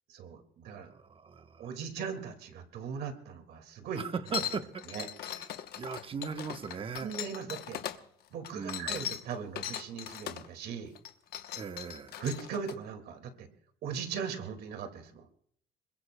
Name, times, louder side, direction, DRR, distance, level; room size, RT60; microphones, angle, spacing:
voice 1, 0.1-0.9 1.6-4.0 4.9-5.1 7.0-7.8 8.3-10.9 12.2-13.5 13.8-15.3, right 6 dB, 70° right, 6 dB, 2.1 m, -39 dB
voice 2, 0.8-1.7 3.9-5.5 5.7-7.1 8.5-9.0 11.5-12.2, right 5 dB, 30° right, 8 dB, 1.1 m, -39 dB
sound 1, 4.3-8.0 8.4-10.5 10.9-12.7, left 10 dB, 70° left, 1.0 m, -39 dB
26.0 x 22.0 x 2.2 m, 0.66 s
cardioid pair, 110°, 17 cm